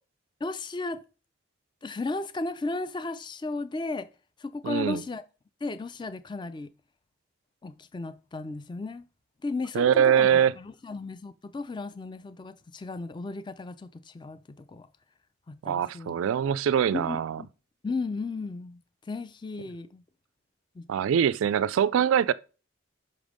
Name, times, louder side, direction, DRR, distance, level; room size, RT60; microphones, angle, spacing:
voice 1, 0.4-1.0 1.8-4.1 4.4-5.2 5.6-6.7 7.6-9.0 9.4-14.9 15.5-16.1 16.9-17.5 17.8-20.0 20.8-20.9, left 3 dB, 20° left, 0.4 m, -35 dB
voice 2, 4.6-5.0 9.7-10.5 15.6-17.4 20.9-22.3, right 8 dB, 80° right, 0.3 m, -23 dB
5.8 x 5.2 x 5.1 m
head